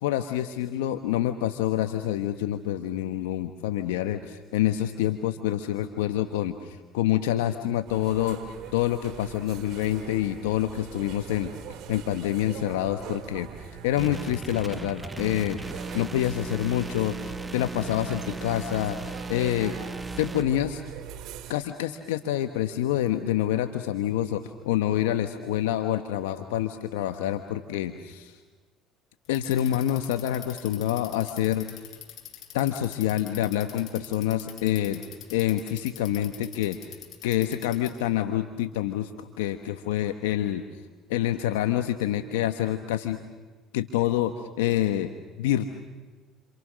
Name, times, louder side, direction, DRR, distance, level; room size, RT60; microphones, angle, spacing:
voice 1, 0.0-8.4 8.7-13.5 13.8-19.0 19.3-19.7 20.2-20.8 21.5-28.4 29.3-31.8 32.5-35.0 35.3-36.8 37.2-40.6 41.1-43.2 43.7-45.1 45.4-45.7, left 12 dB, 90° left, 8 dB, 1.3 m, -27 dB
sound 1, 7.9-21.5, right 10 dB, 65° right, 4.4 m, -42 dB
sound 2, 14.0-20.4, right 3 dB, 15° right, 1.2 m, -37 dB
Bicycle, 29.2-38.1, left 12 dB, 60° left, 7.1 m, -44 dB
30.0 x 27.5 x 6.4 m, 1.3 s
supercardioid pair, 75°, 0 cm